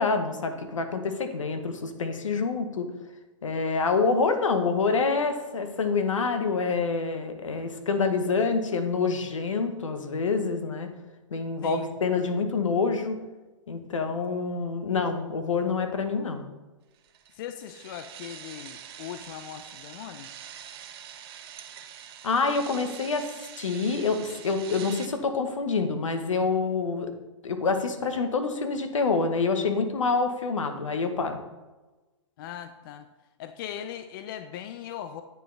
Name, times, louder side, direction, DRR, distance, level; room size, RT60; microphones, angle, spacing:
voice 1, 0.0-2.9 3.4-10.9 11.3-13.2 13.7-16.4 22.2-23.3 23.6-27.1 27.4-31.4, left 4 dB, 85° left, 7 dB, 0.9 m, -27 dB
sound 1, 17.0-25.1, right 9 dB, 50° right, 0.7 m, -44 dB
voice 2, 17.4-20.3 32.4-33.1 33.4-35.2, left 10 dB, 45° left, 10 dB, 0.4 m, -39 dB
9.1 x 3.9 x 3.3 m, 1.1 s
hypercardioid pair, 120°, 16 cm